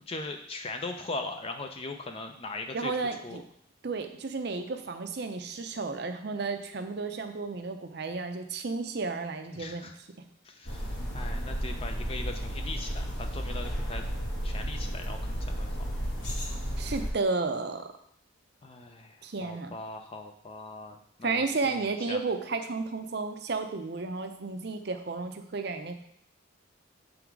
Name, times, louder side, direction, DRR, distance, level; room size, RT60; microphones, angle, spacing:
voice 1, 0.1-2.9 3.2-3.4 9.5-9.9 10.4-10.9 11.1-14.0 14.4-15.8 18.6-22.2, left 2 dB, 30° left, 6 dB, 0.4 m, -40 dB
voice 2, 2.7-3.4 3.8-9.9 16.8-17.9 19.2-19.7 21.2-25.9, right 3 dB, 55° right, 7 dB, 0.6 m, -32 dB
sound 1, 10.6-17.1, equal, 60° left, 1.5 m, -33 dB
7.0 x 3.8 x 4.6 m, 0.69 s
head